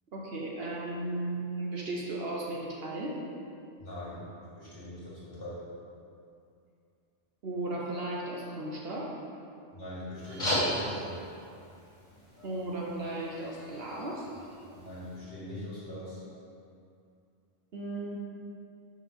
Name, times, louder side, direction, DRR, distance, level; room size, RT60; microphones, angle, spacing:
voice 1, 0.1-3.1 7.4-9.1 12.4-14.2 17.7-18.2, right 2 dB, 55° right, -3 dB, 0.9 m, -35 dB
voice 2, 3.8-4.2 4.6-5.6 9.7-11.2 14.7-16.2, left 1 dB, 50° left, -8 dB, 1.9 m, -42 dB
sound 1, 10.2-15.2, equal, 25° left, 1.4 m, -36 dB
6.0 x 5.0 x 3.5 m, 2.5 s
omnidirectional pair, 1.3 m